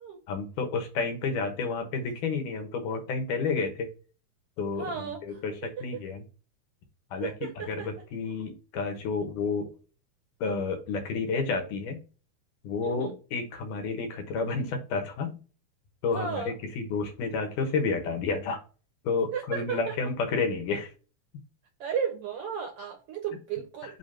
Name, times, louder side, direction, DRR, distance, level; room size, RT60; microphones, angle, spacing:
voice 1, 0.3-3.9 4.6-6.2 7.1-7.3 7.6-9.7 10.4-12.0 12.6-15.4 16.0-16.4 16.8-18.6 19.0-20.9, left 4 dB, 90° left, 5 dB, 2.9 m, -30 dB
voice 2, 4.8-5.4 7.2-7.9 12.8-13.1 16.1-16.5 19.3-20.0 21.8-24.0, right 7 dB, 70° right, 4 dB, 1.4 m, -34 dB
7.1 x 3.0 x 5.5 m, 0.35 s
omnidirectional pair, 3.5 m